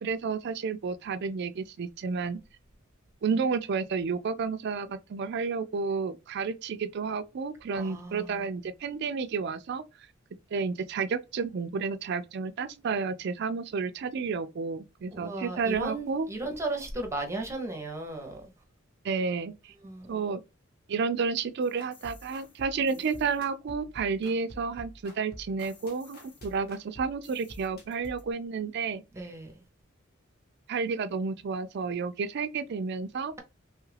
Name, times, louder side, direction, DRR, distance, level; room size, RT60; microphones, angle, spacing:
voice 1, 0.0-2.4 3.2-9.8 10.5-16.3 19.0-19.7 20.1-20.4 20.9-29.0 30.7-33.3, right 5 dB, 55° right, 0.3 m, -31 dB
voice 2, 7.7-8.5 15.1-18.5 19.8-20.1 29.1-29.5, right 2 dB, 15° right, 0.6 m, -35 dB
sound 1, 21.6-28.3, equal, 50° left, 1.0 m, -49 dB
3.1 x 2.3 x 3.2 m
head